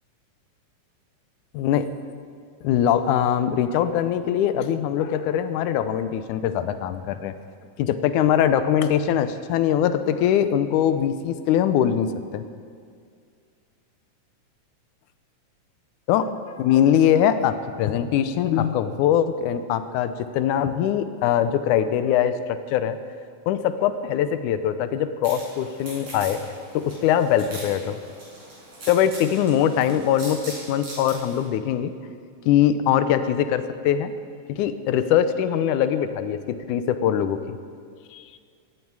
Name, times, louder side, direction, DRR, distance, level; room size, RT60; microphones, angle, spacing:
voice 1, 1.5-1.9 2.6-7.3 7.8-12.4 16.1-16.3 16.6-23.0 23.5-26.4 26.7-28.0 28.9-30.4 30.7-31.9 32.5-34.1 34.5-36.4 36.7-37.6 38.1-38.4, left 9 dB, 75° left, 11 dB, 2.0 m, -22 dB
sound 1, 25.2-31.4, right 1 dB, 45° right, 6.3 m, -41 dB
16.5 x 15.5 x 4.7 m, 2.2 s
omnidirectional pair, 3.8 m